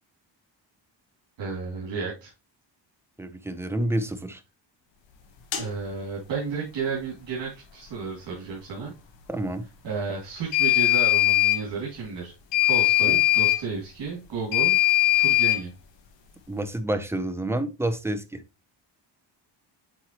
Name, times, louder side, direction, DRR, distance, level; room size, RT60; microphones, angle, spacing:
voice 1, 1.4-2.3 5.6-8.9 9.8-12.3 12.6-14.8 15.2-15.7, right 5 dB, 75° right, 2.6 m, -32 dB
voice 2, 3.2-4.4 9.3-9.6 13.1-13.2 16.5-18.4, right 1 dB, 5° right, 0.6 m, -29 dB
sound 1, 5.5-5.7 10.5-11.6 12.5-13.6 14.5-15.6, left 17 dB, 80° left, 1.5 m, -20 dB
8.1 x 4.5 x 3.0 m
cardioid pair, 145°, 44 cm